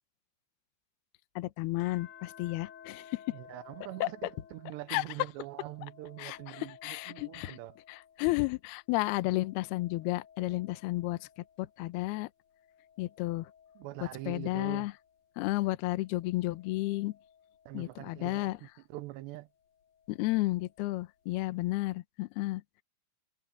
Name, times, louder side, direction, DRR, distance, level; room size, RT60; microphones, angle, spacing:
voice 1, 1.4-3.2 4.0-4.1 4.9-5.0 6.2-7.6 7.9-11.3 11.6-12.3 13.0-13.5 14.0-14.9 15.4-17.1 17.7-18.6 20.1-22.6, left 19 dB, 85° left, 2.2 m, -32 dB
sound 1, 1.8-8.5 9.0-11.9 12.5-15.2 16.0-18.4 19.8-20.8, left 8 dB, 55° left, 3.4 m, -57 dB
voice 2, 3.3-7.8 13.8-14.9 17.7-19.5, right 17 dB, 80° right, 2.5 m, -44 dB
omnidirectional pair, 6.0 m